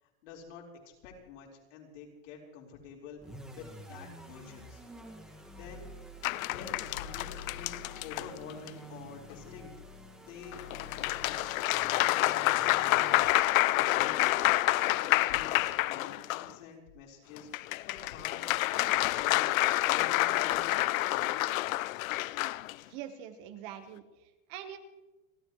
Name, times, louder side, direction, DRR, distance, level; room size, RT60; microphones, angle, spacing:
voice 1, 0.0-4.8 5.5-5.9 6.4-9.7 10.3-13.3 13.7-14.4 14.8-18.4 18.7-19.5 19.8-20.8 21.0-21.4, left 6 dB, 65° left, -1 dB, 4.5 m, -48 dB
sound 1, 3.2-13.6, left 1 dB, ahead, 1.8 m, -49 dB
sound 2, 6.2-8.7 10.5-16.5 17.4-22.7, left 17 dB, 85° left, 0.6 m, -28 dB
voice 2, 22.8-24.8, right 10 dB, 35° right, 8 dB, 1.3 m, -44 dB
29.5 x 12.5 x 3.2 m, 1.0 s
supercardioid pair, 180°, 39 cm